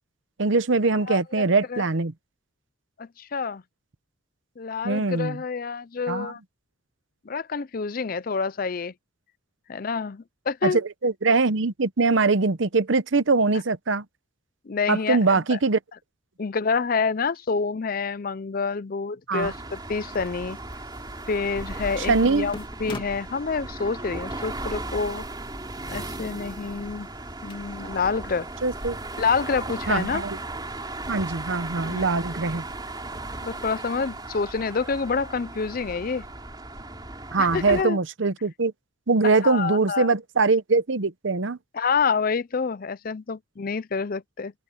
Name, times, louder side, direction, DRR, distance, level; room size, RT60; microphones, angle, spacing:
voice 1, 0.4-2.1 4.8-5.4 6.1-6.3 10.6-14.0 14.9-15.8 19.3-19.5 22.0-22.5 28.6-29.0 29.9-30.4 31.1-32.6 37.3-38.7 39.1-41.6, right 3 dB, 65° right, 0.8 m, -22 dB
voice 2, 1.1-1.8 3.0-3.6 4.6-6.4 7.3-8.9 9.7-10.8 14.7-15.6 16.4-20.6 21.3-25.2 25.9-27.1 27.4-28.5 29.2-30.2 31.8-32.1 33.4-36.3 37.4-38.0 39.4-40.1 41.7-44.5, left 5 dB, 45° left, 0.5 m, -28 dB
sound 1, 19.4-37.8, right 2 dB, 20° right, 3.7 m, -36 dB
sound 2, 19.7-28.9, left 1 dB, 25° left, 2.5 m, -48 dB
open air
head